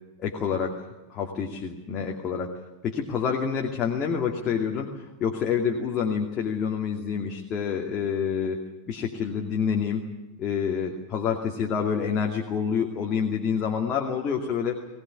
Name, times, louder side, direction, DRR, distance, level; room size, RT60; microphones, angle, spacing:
voice 1, 0.2-2.6 2.8-10.0 10.4-14.8, left 7 dB, 30° left, 1 dB, 2.4 m, -28 dB
21.0 x 18.0 x 9.9 m, 1.0 s
figure-of-eight pair, 90°, 0 cm